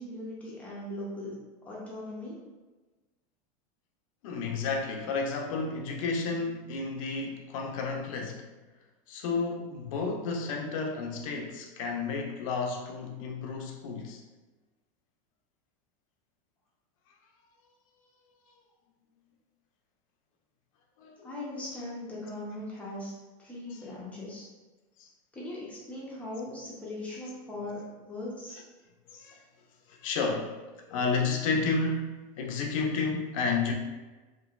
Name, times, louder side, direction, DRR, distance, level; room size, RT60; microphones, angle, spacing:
voice 1, 0.0-1.3 1.6-2.4 21.2-24.5 25.3-28.6, left 1 dB, 10° left, -7 dB, 0.5 m, -39 dB
voice 2, 4.2-8.5 9.1-14.2 21.0-21.3 23.7-23.8 25.0-25.1 29.1-29.4 29.9-30.6 30.9-33.7, left 4 dB, 80° left, 2 dB, 0.5 m, -31 dB
2.9 x 2.5 x 2.4 m, 1.2 s
supercardioid pair, 155°, 17 cm